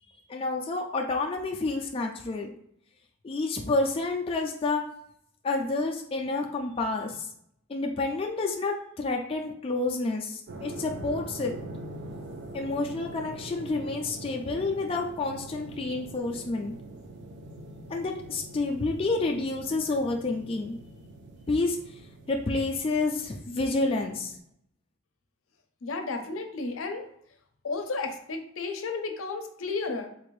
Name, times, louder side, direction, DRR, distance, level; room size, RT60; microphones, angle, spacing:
voice 1, 0.3-2.5 3.2-4.8 5.4-7.3 7.7-11.6 12.5-16.7 17.9-20.8 21.5-21.8 22.3-24.3, left 3 dB, 25° left, 1 dB, 0.3 m, -29 dB
sound 1, 10.5-24.4, right 2 dB, 55° right, 0.5 m, -43 dB
voice 2, 25.8-27.0 27.6-30.1, left 3 dB, 80° left, 5 dB, 0.6 m, -33 dB
3.8 x 2.5 x 3.1 m, 0.69 s
head